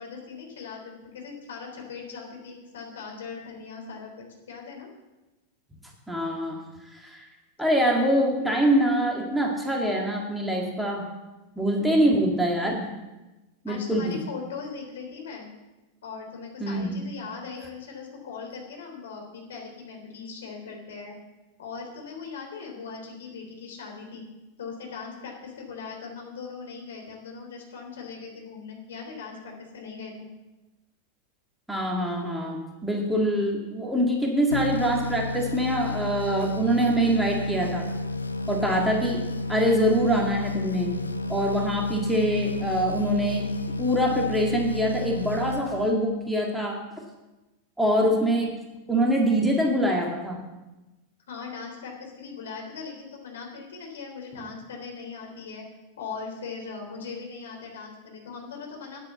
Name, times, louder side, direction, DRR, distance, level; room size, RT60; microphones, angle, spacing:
voice 1, 0.0-4.9 13.7-15.5 16.0-21.2 21.6-24.2 24.6-30.3 51.3-55.6 56.0-59.0, left 5 dB, 60° left, 1 dB, 3.6 m, -39 dB
voice 2, 6.1-6.6 6.9-7.2 7.6-11.1 11.6-12.9 13.6-14.2 16.6-16.9 31.7-37.8 38.5-40.9 41.3-46.8 47.8-48.6 48.9-50.4, equal, 5° right, 0 dB, 2.2 m, -24 dB
sound 1, 34.5-46.2, left 2 dB, 80° left, 0.7 m, -31 dB
10.0 x 8.9 x 7.1 m, 1.1 s
figure-of-eight pair, 90°, 0 cm